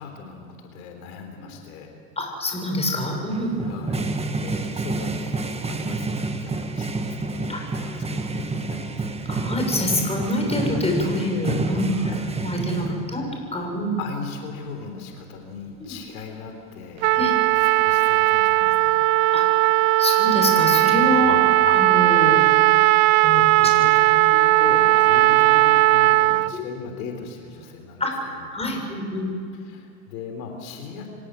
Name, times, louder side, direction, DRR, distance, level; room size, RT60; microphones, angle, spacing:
voice 1, 0.0-1.9 3.6-9.3 11.9-12.2 12.5-13.0 14.0-19.0 21.2-21.6 23.4-28.1 28.4-28.5 29.5-31.1, left 5 dB, 70° left, 4 dB, 3.7 m, -38 dB
voice 2, 2.2-3.6 7.5-7.6 9.3-12.1 12.4-13.2 13.5-13.9 15.8-15.9 17.1-17.3 19.3-19.4 20.0-21.3 21.7-22.5 23.2-23.5 26.5-26.6 28.0-29.3, left 1 dB, 15° left, 2 dB, 6.5 m, -26 dB
sound 1, 3.3-13.3, right 2 dB, 15° right, 1.6 m, -29 dB
Trumpet, 17.0-26.5, right 19 dB, 60° right, 0.7 m, -17 dB
26.0 x 17.5 x 8.0 m, 2.6 s
hypercardioid pair, 105°, 44 cm